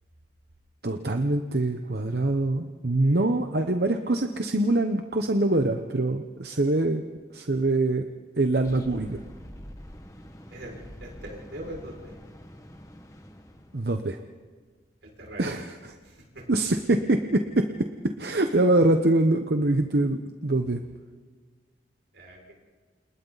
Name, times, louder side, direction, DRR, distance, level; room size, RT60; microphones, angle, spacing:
voice 1, 0.8-7.0 7.3-8.1 8.4-9.2 13.7-14.2 15.4-15.9 16.5-20.8, right 2 dB, 60° right, 6 dB, 1.0 m, -24 dB
sound 1, 8.6-14.0, equal, 20° left, 1.6 m, -46 dB
voice 2, 10.5-12.1 15.0-15.5 16.0-16.4 22.1-22.5, right 1 dB, 85° right, -1 dB, 6.0 m, -42 dB
29.5 x 28.0 x 4.1 m, 1.5 s
head